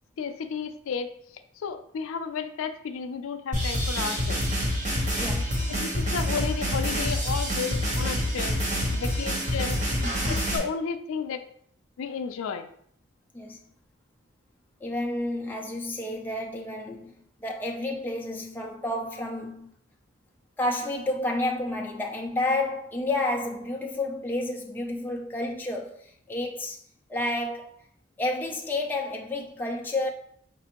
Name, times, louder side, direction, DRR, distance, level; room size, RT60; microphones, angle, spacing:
voice 1, 0.2-1.1 1.6-4.4 5.7-8.6 8.9-9.8 10.3-11.4 12.0-12.6, left 6 dB, 85° left, 0.4 m, -32 dB
sound 1, 3.5-10.6, equal, 35° right, 0.8 m, -27 dB
voice 2, 5.2-5.6 13.3-13.6 14.8-19.8 20.6-26.8 27.1-27.7 28.2-30.1, left 2 dB, 10° left, 0.3 m, -30 dB
5.2 x 2.4 x 2.9 m
head